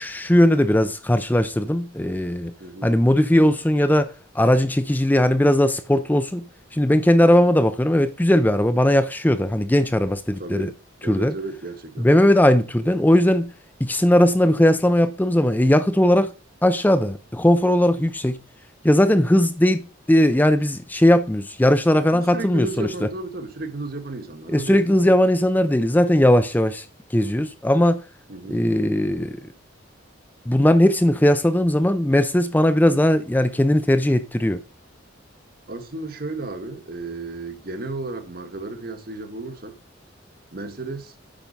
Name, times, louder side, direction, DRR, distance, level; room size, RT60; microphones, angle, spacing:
voice 1, 0.0-2.5 2.8-6.5 6.7-10.7 11.1-11.3 12.0-13.5 13.8-16.3 16.6-18.4 18.8-22.9 24.5-26.8 27.1-28.0 28.5-29.3 30.5-34.6, left 1 dB, 10° left, 0.5 m, -18 dB
voice 2, 2.6-3.0 7.2-7.5 10.4-10.8 11.0-12.3 22.1-25.1 28.3-28.7 35.7-39.8 40.5-41.1, right 2 dB, 50° right, 1.3 m, -33 dB
9.1 x 5.5 x 5.2 m
head